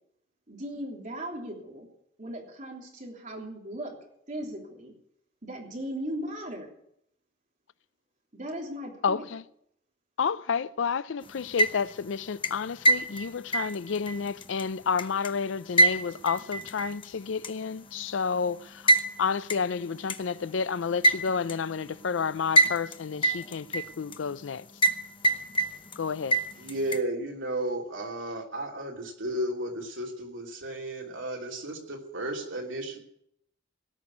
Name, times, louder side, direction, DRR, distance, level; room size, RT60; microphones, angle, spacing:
voice 1, 0.5-1.9 2.2-4.0 4.3-4.9 5.4-6.7 8.3-9.3, right 1 dB, 40° right, 3.4 m, -37 dB
voice 2, 9.0-9.4 10.2-18.6 19.2-24.6 26.0-26.4, left 6 dB, 80° left, 0.5 m, -30 dB
sound 1, 11.4-12.0 12.4-15.3 15.8-17.0 17.4-17.5 18.9-19.1 19.5-19.6 20.1-20.2 21.0-21.6 22.6-22.9 23.2-24.2 24.8-25.0 25.2-26.0 26.3-27.0, right 2 dB, 25° left, 0.8 m, -24 dB
voice 3, 26.5-33.0, right 1 dB, 85° right, 3.0 m, -33 dB
18.0 x 6.2 x 9.6 m
head